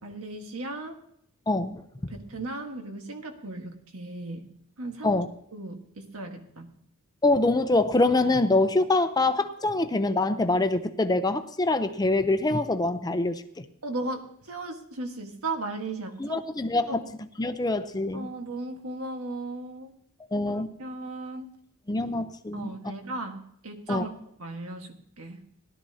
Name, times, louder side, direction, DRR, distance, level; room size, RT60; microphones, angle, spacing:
voice 1, 0.0-1.0 2.1-4.5 4.8-5.2 5.5-6.7 13.8-16.4 16.9-17.1 18.1-19.9 20.5-21.5 22.5-24.1 24.4-25.4, right 2 dB, 85° right, 4 dB, 1.5 m, -36 dB
voice 2, 1.5-1.8 5.0-5.3 7.2-13.6 16.2-17.0 17.4-18.3 20.3-20.7 21.9-22.7 23.9-24.0, left 2 dB, 20° left, 9 dB, 0.6 m, -24 dB
17.5 x 12.0 x 2.8 m, 0.72 s
head